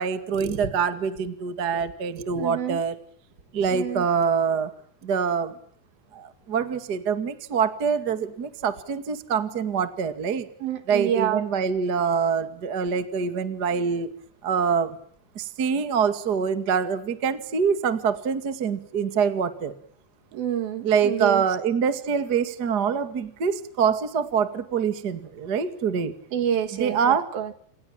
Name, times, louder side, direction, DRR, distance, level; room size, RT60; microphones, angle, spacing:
voice 1, 0.0-3.0 3.5-4.7 5.0-5.5 6.1-10.5 10.9-14.1 14.4-15.0 15.4-19.7 20.8-26.1 26.8-27.3, right 6 dB, 35° right, 11 dB, 1.8 m, -25 dB
voice 2, 2.4-2.8 3.7-4.1 10.6-11.4 20.3-21.5 26.3-27.5, right 9 dB, 65° right, 11 dB, 3.4 m, -28 dB
29.0 x 27.5 x 7.4 m, 0.63 s
omnidirectional pair, 4.8 m